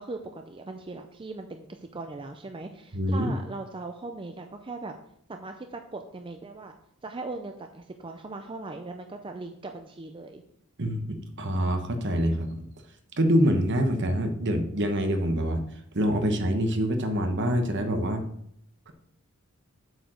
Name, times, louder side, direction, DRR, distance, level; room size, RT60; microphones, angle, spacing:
voice 1, 0.0-4.9 5.3-6.7 7.0-10.4, right 3 dB, 25° right, 5 dB, 0.5 m, -39 dB
voice 2, 2.9-3.3 10.8-12.7 13.2-15.6 15.9-18.2 18.9-19.0, equal, 55° right, 6 dB, 1.2 m, -25 dB
8.0 x 5.0 x 6.3 m, 0.70 s
head